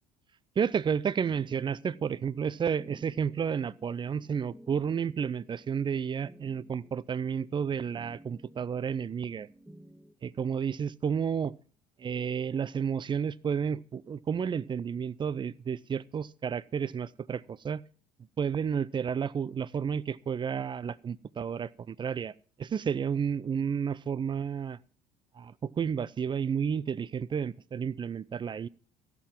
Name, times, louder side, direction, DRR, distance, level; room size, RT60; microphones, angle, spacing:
voice 1, 0.6-9.5 10.2-11.5 12.0-17.8 18.4-22.3 22.6-24.8 25.4-28.7, right 7 dB, 25° right, 0.5 m, -31 dB
sound 1, 1.2-10.2, right 1 dB, ahead, 1.1 m, -55 dB
13.5 x 6.1 x 7.3 m
figure-of-eight pair, 60°, 20 cm